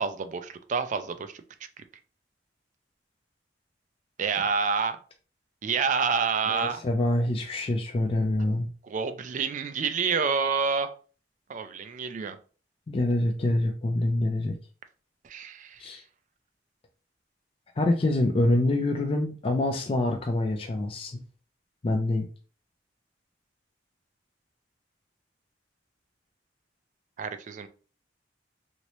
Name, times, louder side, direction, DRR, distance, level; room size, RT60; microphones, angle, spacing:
voice 1, 0.0-1.4 4.2-5.0 5.6-6.8 8.8-10.9 11.5-12.4 15.2-15.8 27.2-27.7, right 5 dB, 40° right, 10 dB, 0.3 m, -28 dB
voice 2, 6.5-8.7 12.9-14.5 15.8-16.0 17.8-21.2 21.8-22.3, left 1 dB, 30° left, 3 dB, 0.3 m, -26 dB
3.0 x 2.7 x 3.0 m, 0.38 s
head